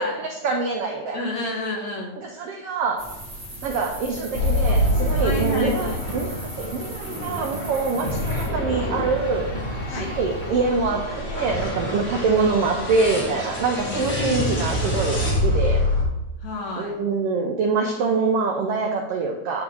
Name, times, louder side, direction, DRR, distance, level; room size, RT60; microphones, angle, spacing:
voice 1, 0.0-1.3 2.2-3.1 3.6-9.5 9.9-15.9 16.8-19.6, right 4 dB, 85° right, 1 dB, 1.3 m, -25 dB
voice 2, 1.1-2.1 5.2-6.0 9.9-10.1 13.9-14.7 16.4-17.0, left 1 dB, 65° left, -1 dB, 2.7 m, -30 dB
sound 1, 3.0-8.5, right 1 dB, 20° right, 1.2 m, -38 dB
sound 2, 4.3-16.1, left 1 dB, 30° left, 1.9 m, -26 dB
sound 3, 4.3-10.8, right 2 dB, 45° right, 0.8 m, -39 dB
10.0 x 3.5 x 4.8 m, 1.0 s
omnidirectional pair, 3.5 m